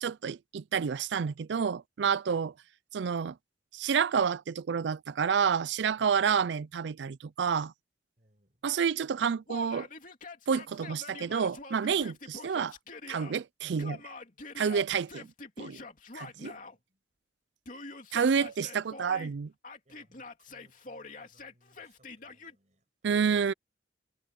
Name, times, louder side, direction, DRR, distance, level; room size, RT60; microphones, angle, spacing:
voice 1, 0.0-2.5 2.9-3.4 3.7-7.7 8.6-9.9 10.5-12.8 13.1-14.0 14.6-15.3 15.6-15.8 16.1-16.6 18.1-19.5 23.0-23.5, right 6 dB, 75° right, 0.4 m, -29 dB
voice 2, 8.2-8.6 16.7-17.0 18.4-18.6 19.8-22.9, right 1 dB, 40° right, 7.2 m, -66 dB
Yell, 9.5-13.3 13.8-16.8 17.7-19.3 19.6-22.5, left 3 dB, 45° left, 2.9 m, -45 dB
head